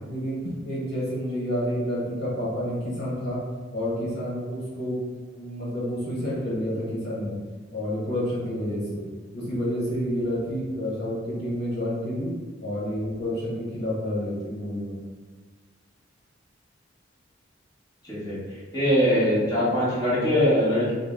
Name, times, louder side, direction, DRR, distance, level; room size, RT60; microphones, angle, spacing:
voice 1, 0.0-3.4 3.7-5.0 5.3-7.4 7.7-9.0 9.3-12.3 12.6-15.0, equal, 60° left, -7 dB, 1.0 m, -29 dB
voice 2, 18.0-18.4 18.7-20.9, equal, 20° left, -10 dB, 1.3 m, -22 dB
3.8 x 2.0 x 3.6 m, 1.4 s
head